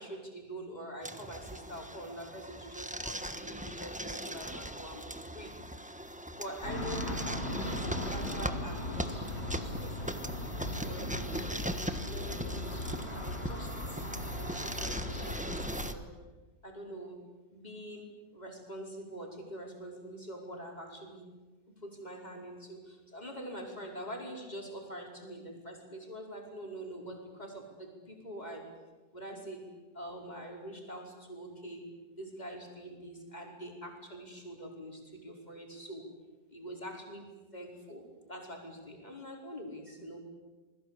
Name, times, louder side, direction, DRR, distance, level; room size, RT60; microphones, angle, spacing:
voice 1, 0.0-5.0 5.3-5.5 6.3-9.9 10.2-10.3 10.8-11.7 12.0-16.1 16.6-17.2 17.5-21.3 21.7-28.6 29.1-29.7 29.9-31.8 32.1-36.1 36.5-37.3 37.5-40.2, right 1 dB, 25° left, 1 dB, 5.3 m, -45 dB
sound 1, 1.0-15.9, right 1 dB, 5° right, 1.1 m, -40 dB
sound 2, 6.6-15.9, left 1 dB, 60° left, 5.2 m, -38 dB
28.0 x 21.0 x 8.5 m, 1.2 s
omnidirectional pair, 1.8 m